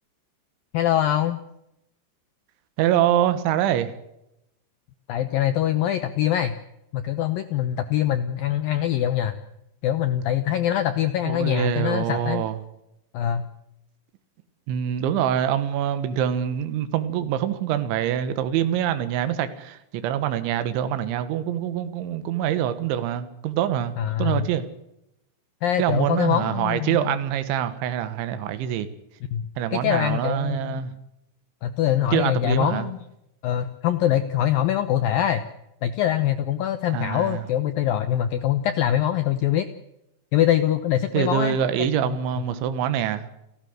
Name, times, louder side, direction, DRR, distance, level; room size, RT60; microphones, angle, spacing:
voice 1, 0.7-1.4 5.1-6.6 6.9-9.4 9.8-12.4 13.1-13.5 24.0-24.5 25.6-27.1 29.3-30.8 31.6-33.0 33.4-35.4 35.8-39.7 40.3-41.6 42.0-42.2, left 11 dB, 80° left, 11 dB, 2.0 m, -23 dB
voice 2, 2.8-3.9 11.2-12.6 14.7-24.6 25.8-28.9 29.6-30.9 32.1-32.9 36.9-37.4 41.1-43.3, right 10 dB, 80° right, 11 dB, 3.7 m, -25 dB
30.0 x 12.5 x 8.0 m, 0.83 s
omnidirectional pair, 5.4 m